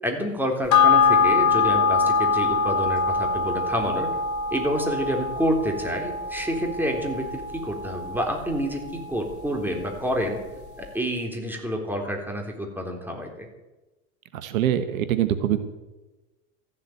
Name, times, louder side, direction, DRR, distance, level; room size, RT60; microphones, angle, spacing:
voice 1, 0.0-4.1 4.5-10.4 10.8-13.5, equal, 5° right, 2 dB, 3.7 m, -28 dB
sound 1, 0.7-9.5 9.8-9.9, left 4 dB, 45° left, 2.0 m, -23 dB
voice 2, 14.4-15.6, right 11 dB, 80° right, 10 dB, 1.3 m, -23 dB
14.5 x 7.7 x 9.0 m, 1.1 s
hypercardioid pair, 95°, 41 cm